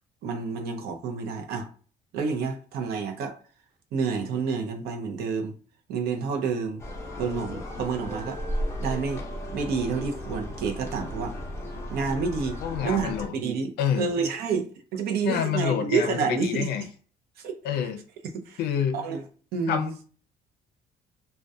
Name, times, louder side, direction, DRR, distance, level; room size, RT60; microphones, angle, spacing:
voice 1, 0.2-1.7 2.1-3.4 3.9-5.6 5.9-6.8 7.2-8.4 8.8-9.2 9.5-11.4 11.9-16.7 17.4-17.6 18.3-18.6 18.9-19.2 19.5-19.9, right 5 dB, 75° right, 0.5 m, -29 dB
sound 1, 6.8-13.3, equal, 15° left, 0.5 m, -35 dB
voice 2, 12.6-13.3 13.8-14.1 15.2-16.9 17.6-18.0 18.6-19.0 19.7-19.9, left 8 dB, 80° left, 0.4 m, -27 dB
2.3 x 2.1 x 2.6 m
cardioid pair, 145°, 16 cm